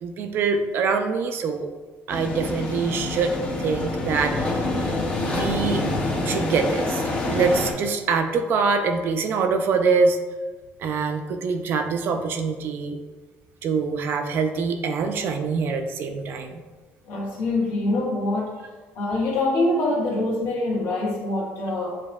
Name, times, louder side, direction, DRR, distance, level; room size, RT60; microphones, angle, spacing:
voice 1, 0.0-1.7 2.1-4.7 5.2-10.2 10.8-13.0 13.6-16.6, right 4 dB, 50° right, 6 dB, 0.4 m, -24 dB
sound 1, 2.1-7.7, left 2 dB, 20° left, 0.6 m, -26 dB
voice 2, 17.1-18.6 18.9-22.0, left 2 dB, 60° left, -4 dB, 1.4 m, -24 dB
7.2 x 2.6 x 2.3 m, 1.3 s
cardioid pair, 155°, 5 cm